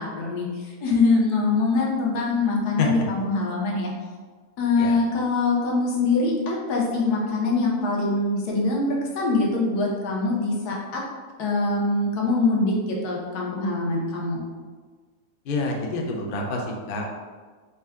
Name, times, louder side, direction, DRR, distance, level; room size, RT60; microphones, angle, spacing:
voice 1, 0.0-3.9 4.6-11.0 11.4-14.4, left 3 dB, 85° left, -2 dB, 1.3 m, -23 dB
voice 2, 15.5-17.1, left 3 dB, 65° left, 0 dB, 0.5 m, -27 dB
4.3 x 2.2 x 3.5 m, 1.5 s
omnidirectional pair, 1.7 m